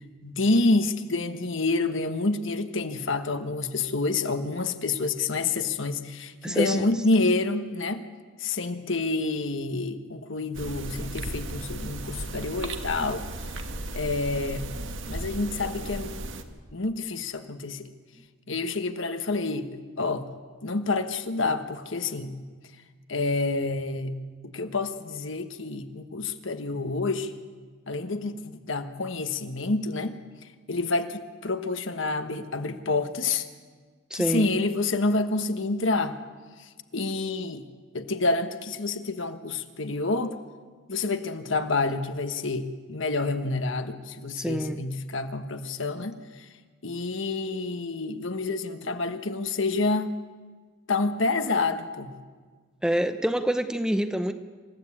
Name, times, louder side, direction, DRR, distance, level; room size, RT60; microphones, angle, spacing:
voice 1, 0.2-8.0 8.4-13.2 13.9-14.7 15.1-16.2 16.7-17.9 18.5-20.3 20.6-22.4 23.1-24.1 24.4-27.3 27.9-30.2 30.7-33.5 34.1-36.2 36.9-37.6 37.9-40.4 40.9-46.5 46.8-50.2 50.9-52.1, left 3 dB, 70° left, 8 dB, 1.4 m, -28 dB
voice 2, 6.4-6.9 34.1-34.5 44.4-44.8 52.8-54.3, equal, 5° right, 8 dB, 0.8 m, -26 dB
sound 1, 10.5-16.4, right 2 dB, 70° right, 1.7 m, -35 dB
27.0 x 15.5 x 8.6 m, 1.5 s
head